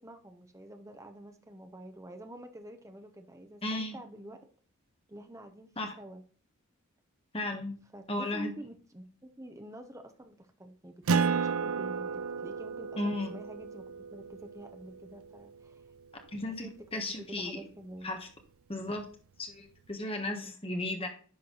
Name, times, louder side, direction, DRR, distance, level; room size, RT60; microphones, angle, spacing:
voice 1, 0.0-4.4 5.1-5.7 6.0-6.2 7.9-13.8 14.1-15.8 16.4-18.1 20.2-20.5, right 1 dB, 15° right, 6 dB, 0.8 m, -48 dB
voice 2, 3.6-4.0 5.8-5.9 7.3-7.7 8.1-8.5 13.0-13.3 16.3-17.6 18.0-18.3 18.7-19.0 19.4-21.1, left 2 dB, 25° left, 4 dB, 1.4 m, -35 dB
Acoustic guitar, 11.1-16.0, right 5 dB, 70° right, 0.5 m, -33 dB
10.5 x 4.6 x 3.9 m, 0.42 s
head